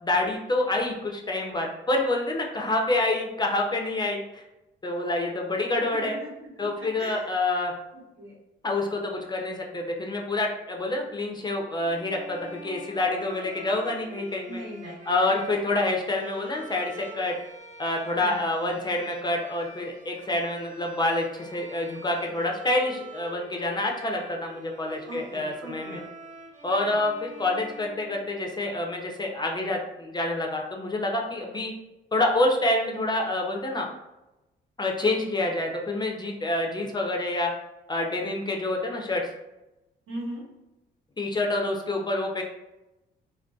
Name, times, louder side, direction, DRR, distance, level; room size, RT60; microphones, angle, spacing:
voice 1, 0.0-4.4 4.8-6.2 6.6-7.7 8.6-14.6 15.1-17.3 17.8-26.0 26.6-31.7 32.1-33.9 34.8-37.5 37.9-39.2 41.2-42.4, left 2 dB, 20° left, 0 dB, 0.4 m, -27 dB
voice 2, 4.9-5.3 6.0-7.3 8.1-8.3 14.5-15.4 18.1-18.4 25.0-26.0 26.7-27.0 40.1-40.4, right 1 dB, 80° right, -5 dB, 1.1 m, -40 dB
sound 1, 11.8-28.6, right 1 dB, 40° right, 0.6 m, -45 dB
2.5 x 2.2 x 2.2 m, 0.96 s
cardioid pair, 90°, 20 cm